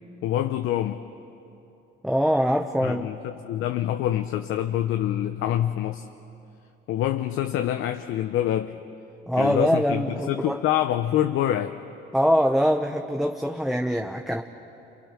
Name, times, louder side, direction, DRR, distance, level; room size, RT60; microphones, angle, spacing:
voice 1, 0.2-1.0 2.8-6.0 6.9-8.8 9.4-11.8, left 11 dB, 75° left, 7 dB, 0.8 m, -26 dB
voice 2, 2.0-3.1 9.3-10.6 12.1-14.4, equal, ahead, 3 dB, 1.0 m, -23 dB
29.0 x 28.0 x 6.0 m, 2.9 s
cardioid pair, 105°, 21 cm